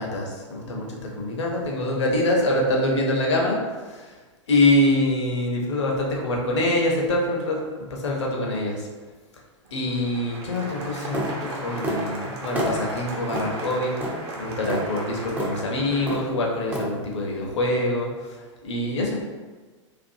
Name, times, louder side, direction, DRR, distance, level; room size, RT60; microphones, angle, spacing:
voice 1, 0.0-3.6 3.9-4.0 4.5-7.6 7.9-8.8 9.7-14.0 14.4-18.1 18.6-19.2, left 1 dB, 65° left, -1 dB, 0.6 m, -24 dB
Applause, 9.7-16.6, right 2 dB, 55° right, 0.6 m, -37 dB
sound 1, 11.1-11.3 11.8-12.0 12.6-12.8 13.3-13.5 14.0-14.2 14.7-14.8 15.4-15.5 16.1-16.3 16.7-16.9, right 1 dB, 10° right, 0.3 m, -27 dB
2.5 x 2.4 x 2.6 m, 1.4 s
figure-of-eight pair, 95°, 16 cm